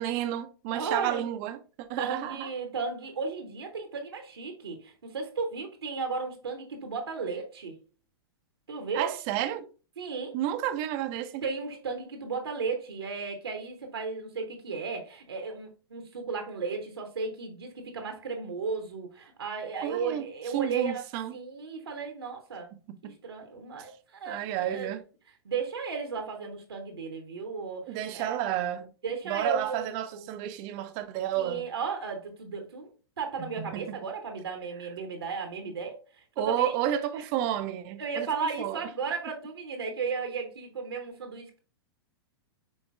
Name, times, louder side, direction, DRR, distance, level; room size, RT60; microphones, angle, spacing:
voice 1, 0.0-2.5 8.9-9.7 10.3-11.4 19.8-20.3 20.5-21.3 22.9-23.1 24.3-25.0 27.9-28.8 29.3-31.6 33.4-34.0 36.4-38.3 38.6-38.8, right 12 dB, 35° right, 0.5 m, -31 dB
voice 2, 0.7-1.3 2.0-7.8 8.7-9.1 10.0-10.4 11.4-21.0 21.3-22.8 23.0-24.9 25.4-28.4 29.0-29.8 30.1-30.2 31.4-32.9 33.2-36.0 36.4-36.7 38.0-41.6, right 5 dB, 70° right, 0.9 m, -34 dB
5.5 x 3.8 x 2.4 m
figure-of-eight pair, 100°, 13 cm